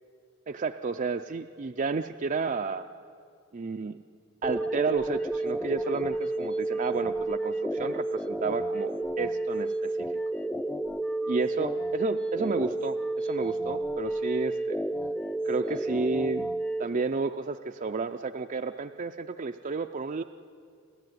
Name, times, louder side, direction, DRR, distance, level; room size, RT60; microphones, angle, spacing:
voice 1, 0.5-2.8 3.5-4.0 4.4-10.1 11.3-14.8 15.4-16.5 16.8-20.2, right 4 dB, 40° right, 7 dB, 0.5 m, -31 dB
sound 1, 4.4-16.8, right 2 dB, 5° left, 0.6 m, -31 dB
29.5 x 13.0 x 9.4 m, 2.4 s
head